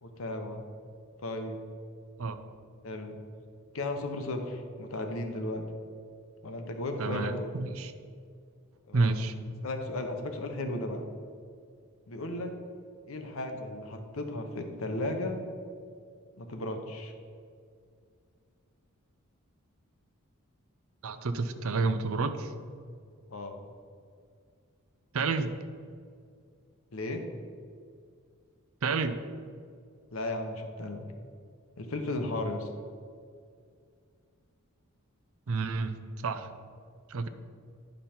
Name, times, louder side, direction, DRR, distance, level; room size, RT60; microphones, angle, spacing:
voice 1, 0.0-0.6 1.2-1.6 2.8-3.2 3.7-5.6 6.4-7.5 8.9-9.1 9.6-11.1 12.1-12.5 13.1-15.4 16.4-17.1 23.3-23.7 26.9-27.2 30.1-31.0 31.8-32.7, left 2 dB, 70° left, 5 dB, 0.9 m, -35 dB
voice 2, 7.0-7.9 8.9-9.3 21.0-22.5 25.1-25.6 28.8-29.2 35.5-36.0 36.2-36.5 37.1-37.3, right 3 dB, 70° right, 10 dB, 0.5 m, -30 dB
10.0 x 5.4 x 4.3 m, 2.2 s
head